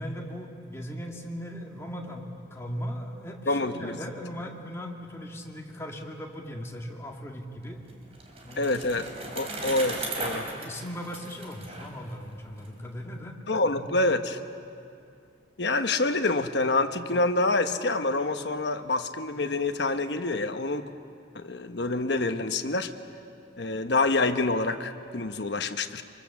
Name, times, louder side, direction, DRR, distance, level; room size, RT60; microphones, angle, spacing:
voice 1, 0.0-7.8 8.4-8.8 9.1-9.7 10.4-13.9, equal, 15° left, 0 dB, 2.1 m, -38 dB
voice 2, 3.5-3.9 8.6-9.1 9.3-10.5 13.5-14.4 15.6-20.9 21.3-22.9 23.6-26.0, left 2 dB, 70° left, 7 dB, 1.1 m, -27 dB
Bicycle, 7.6-12.7, right 2 dB, 35° right, 3.6 m, -37 dB
24.5 x 24.0 x 7.2 m, 2.4 s
head